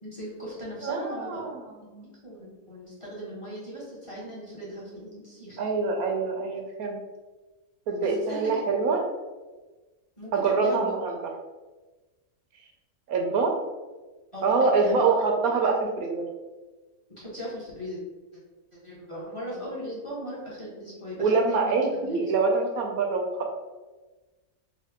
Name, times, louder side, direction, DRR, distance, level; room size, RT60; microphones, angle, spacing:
voice 1, 0.0-1.4 2.2-5.6 8.0-8.6 10.2-10.9 14.3-15.1 15.4-15.6 17.2-18.0 18.8-22.3, equal, 25° left, -7 dB, 1.0 m, -38 dB
voice 2, 0.8-2.1 5.6-7.0 7.9-9.0 10.3-11.2 13.1-13.6 14.4-16.3 19.5-19.7 21.2-23.5, right 4 dB, 80° right, 2 dB, 1.1 m, -25 dB
3.6 x 2.6 x 3.5 m, 1.2 s
omnidirectional pair, 1.5 m